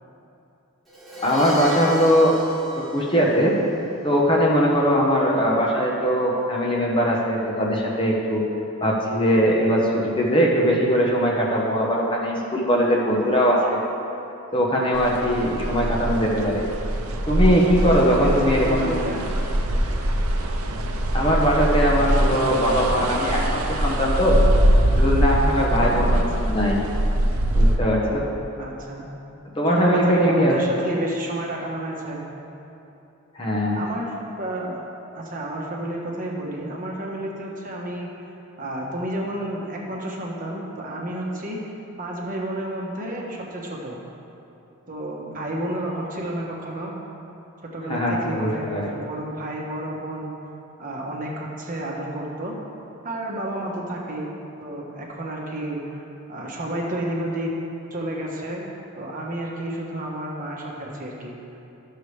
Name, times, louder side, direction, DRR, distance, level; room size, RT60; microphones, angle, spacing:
Crash cymbal, 0.9-3.8, equal, ahead, 1.5 m, -38 dB
voice 1, 1.2-2.4 2.8-3.5 4.0-8.4 8.8-13.8 14.5-16.6 17.3-18.9 21.1-24.4 25.0-26.8 27.5-28.3 29.6-30.5 33.3-33.8 47.9-48.8, equal, 25° left, -3 dB, 0.9 m, -21 dB
sound 1, 14.9-27.8, right 1 dB, 80° right, 0.7 m, -22 dB
voice 2, 18.0-19.3 25.7-26.5 28.5-29.1 29.7-32.2 33.7-34.8 35.1-38.1 38.6-41.6 42.0-44.0 44.9-46.9 47.7-50.3 50.8-52.5 53.0-54.3 54.6-56.0 56.3-57.5 57.9-58.7 59.0-61.4, right 1 dB, 35° right, -2 dB, 1.1 m, -30 dB
12.0 x 6.6 x 3.3 m, 2.9 s
head